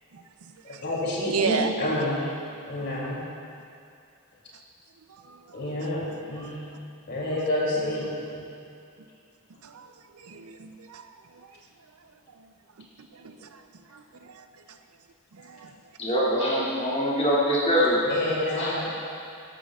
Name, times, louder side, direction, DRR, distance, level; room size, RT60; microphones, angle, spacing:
voice 1, 0.1-0.8 1.2-1.7 5.1-6.8 8.1-8.2 9.6-11.6 12.0-14.8 15.3-15.8, right 5 dB, 75° right, 7 dB, 0.6 m, -36 dB
voice 2, 0.6-2.3 2.7-3.2 5.5-6.0 6.3-6.6 7.1-8.5 18.0-18.9, left 1 dB, 50° left, -5 dB, 2.8 m, -28 dB
voice 3, 16.0-18.0 18.6-18.8, equal, 30° left, -7 dB, 2.4 m, -23 dB
13.5 x 13.0 x 2.4 m, 2.4 s
head